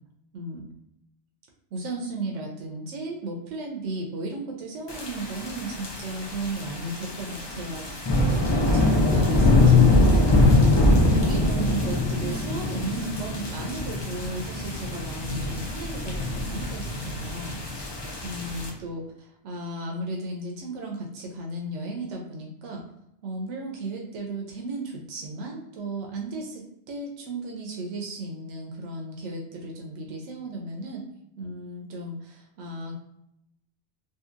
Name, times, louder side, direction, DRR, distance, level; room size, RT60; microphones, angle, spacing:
voice 1, 1.7-8.0 8.3-17.6 18.2-22.8 23.2-31.0 31.4-33.0, right 2 dB, 85° right, 0 dB, 0.9 m, -35 dB
sound 1, 4.9-18.7, left 2 dB, 45° left, 0.3 m, -23 dB
2.7 x 2.6 x 2.4 m, 0.81 s
omnidirectional pair, 1.2 m